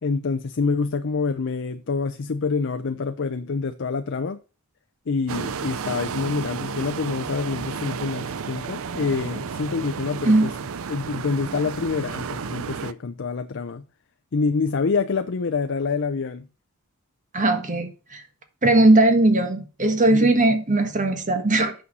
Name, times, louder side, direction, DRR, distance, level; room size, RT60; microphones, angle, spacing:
voice 1, 0.0-4.4 5.1-10.5 10.9-13.8 14.3-16.5 20.1-20.3, left 4 dB, 55° left, 0.5 m, -26 dB
sound 1, 5.3-12.9, right 6 dB, 65° right, 0.5 m, -32 dB
voice 2, 17.3-18.2 18.6-21.7, right 2 dB, 35° right, 1.5 m, -19 dB
8.5 x 6.4 x 5.4 m
head